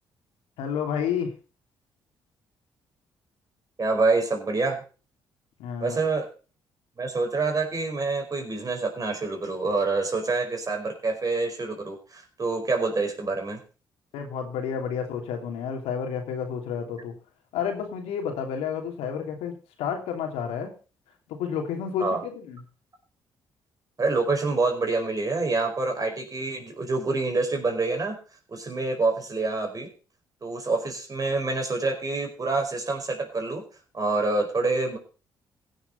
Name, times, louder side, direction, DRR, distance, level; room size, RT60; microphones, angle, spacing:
voice 1, 0.6-1.3 5.6-6.0 14.1-17.1 17.5-20.7 21.3-22.6, left 7 dB, 80° left, 3 dB, 2.9 m, -30 dB
voice 2, 3.8-4.8 5.8-6.3 7.0-13.6 22.0-22.2 24.0-28.2 28.5-29.9 30.4-33.6 33.9-35.0, right 3 dB, 35° right, 3 dB, 5.1 m, -26 dB
16.0 x 7.1 x 5.5 m, 0.36 s
supercardioid pair, 55°, 10 cm